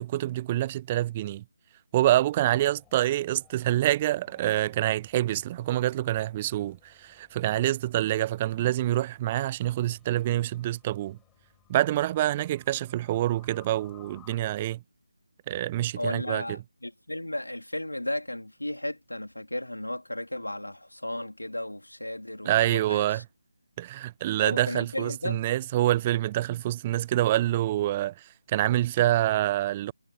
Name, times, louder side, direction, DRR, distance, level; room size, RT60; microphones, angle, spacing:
voice 1, 0.0-1.4 1.9-11.2 11.7-14.8 15.5-16.4 22.4-23.2 23.8-29.9, right 14 dB, 20° right, 0.4 m, -26 dB
sound 1, 2.2-14.4, left 13 dB, 10° left, 6.7 m, -61 dB
voice 2, 16.0-23.2 24.4-25.5, left 1 dB, 80° left, 3.6 m, -34 dB
figure-of-eight pair, 155°, 0 cm